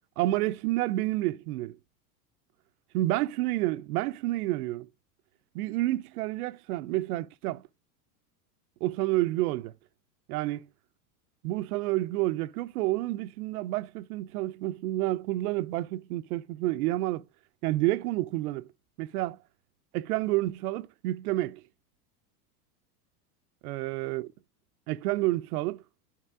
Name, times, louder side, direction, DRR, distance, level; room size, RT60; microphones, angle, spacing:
voice 1, 0.2-1.8 2.9-4.9 5.5-7.6 8.8-9.7 10.3-10.7 11.4-17.2 17.6-18.7 19.0-19.4 19.9-21.6 23.6-24.3 24.9-25.8, right 17 dB, 70° right, 0.7 m, -29 dB
10.0 x 4.3 x 3.6 m
supercardioid pair, 120°, 47 cm